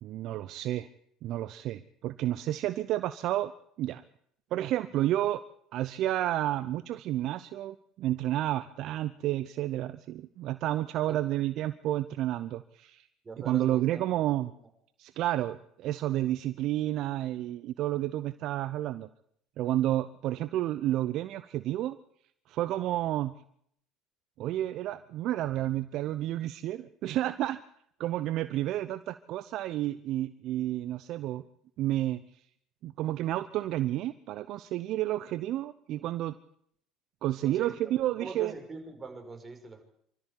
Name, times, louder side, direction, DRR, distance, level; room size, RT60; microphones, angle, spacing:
voice 1, 0.0-0.9 1.2-3.5 3.8-4.0 4.5-5.4 5.7-13.1 13.4-14.5 15.0-19.1 19.6-22.0 22.5-23.3 24.4-27.6 28.0-31.4 31.8-32.2 32.8-36.4 37.2-38.5, right 14 dB, 60° right, 13 dB, 0.7 m, -30 dB
voice 2, 13.2-14.1 37.4-37.7 38.2-39.8, right 3 dB, 30° right, 4 dB, 6.0 m, -42 dB
26.0 x 13.5 x 8.3 m, 0.70 s
hypercardioid pair, 65°, 0 cm